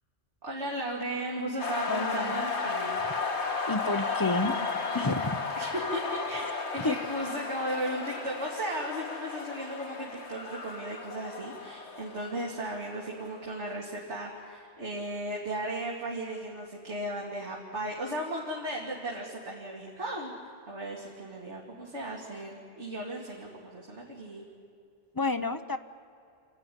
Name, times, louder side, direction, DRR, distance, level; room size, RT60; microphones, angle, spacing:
voice 1, 0.4-3.0 5.6-6.4 6.7-20.3 20.7-24.5, right 1 dB, 75° right, -2 dB, 2.7 m, -36 dB
sound 1, 1.6-13.3, left 4 dB, 70° left, 1.9 m, -34 dB
voice 2, 1.9-2.5 3.7-4.5 4.9-5.4 6.4-6.5 6.8-7.0 25.1-25.8, left 3 dB, 20° left, 8 dB, 0.7 m, -30 dB
27.0 x 15.5 x 10.0 m, 2.5 s
omnidirectional pair, 1.2 m